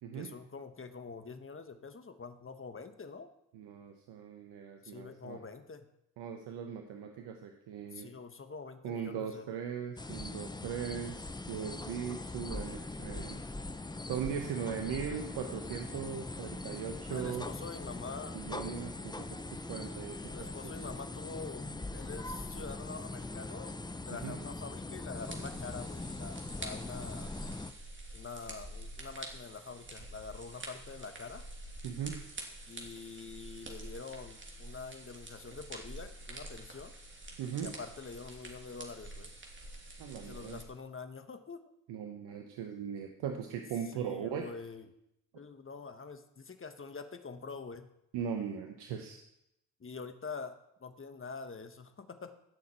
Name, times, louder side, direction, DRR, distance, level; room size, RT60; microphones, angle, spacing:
voice 1, 0.1-3.3 4.8-5.9 7.9-9.4 17.1-18.4 20.3-27.3 28.1-31.4 32.7-36.9 37.6-39.3 40.2-41.7 43.9-44.9 45.3-47.9 49.8-52.3, left 4 dB, 30° left, 9 dB, 1.3 m, -45 dB
voice 2, 3.5-5.4 6.2-8.1 8.8-13.4 14.0-17.5 18.3-20.9 24.2-24.4 31.8-32.2 37.4-37.7 40.0-40.6 41.9-44.5 48.1-49.2, right 8 dB, 70° right, 4 dB, 1.1 m, -39 dB
sound 1, 10.0-27.7, left 2 dB, 10° left, 0.8 m, -41 dB
sound 2, 25.1-40.6, right 1 dB, 30° right, 2.8 m, -47 dB
16.5 x 6.5 x 4.4 m, 0.80 s
hypercardioid pair, 50°, 41 cm